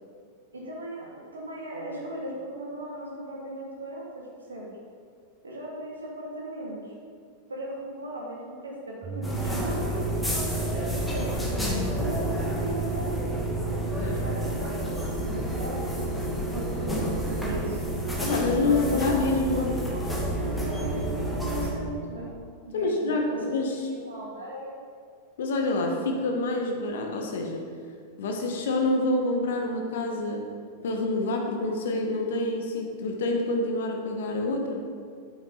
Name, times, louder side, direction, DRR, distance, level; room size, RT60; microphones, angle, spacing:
voice 1, 0.5-4.7 5.4-6.9 7.5-10.0 10.7-11.4 11.7-13.2 14.0-17.8 18.6-22.3 22.7-24.8, right 1 dB, 75° right, -3 dB, 2.6 m, -37 dB
sound 1, 9.0-14.6, right 5 dB, 20° right, 0.4 m, -35 dB
sound 2, 9.2-21.7, equal, 5° left, 2.4 m, -30 dB
voice 2, 18.2-19.7 22.7-23.9 25.4-27.7 28.2-30.5 30.8-34.9, left 2 dB, 60° left, 2 dB, 1.6 m, -27 dB
11.0 x 9.0 x 4.1 m, 2.1 s
figure-of-eight pair, 90°, 0 cm